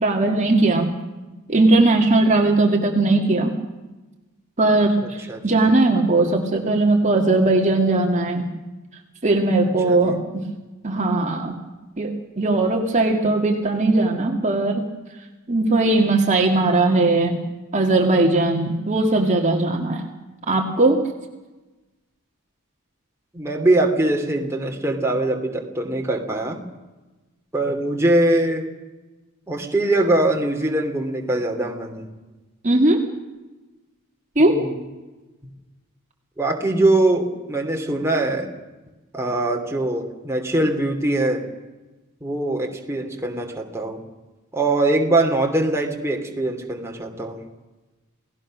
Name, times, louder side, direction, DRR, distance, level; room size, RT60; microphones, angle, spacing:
voice 1, 0.0-0.9 1.5-3.5 4.6-8.5 9.2-10.4 10.8-11.6 12.0-14.9 15.5-17.4 17.7-20.1 20.5-21.0 32.6-33.0 34.4-34.6, right 2 dB, 35° right, 2 dB, 2.0 m, -19 dB
voice 2, 23.3-26.6 27.5-28.7 29.5-32.1 34.5-34.8 36.4-38.5 39.1-41.4 42.2-44.0 44.5-47.4, right 2 dB, 10° right, 1 dB, 2.7 m, -22 dB
28.5 x 17.5 x 6.4 m, 1.2 s
head